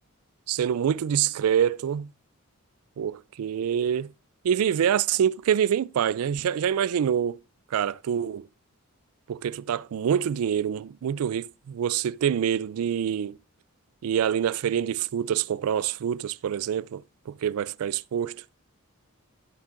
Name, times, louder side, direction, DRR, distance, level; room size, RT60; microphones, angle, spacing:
voice 1, 0.5-2.1 3.0-4.1 4.4-7.4 7.7-8.5 9.3-13.4 14.0-18.3, right 8 dB, 90° right, 0.3 m, -26 dB
12.5 x 7.4 x 2.5 m
head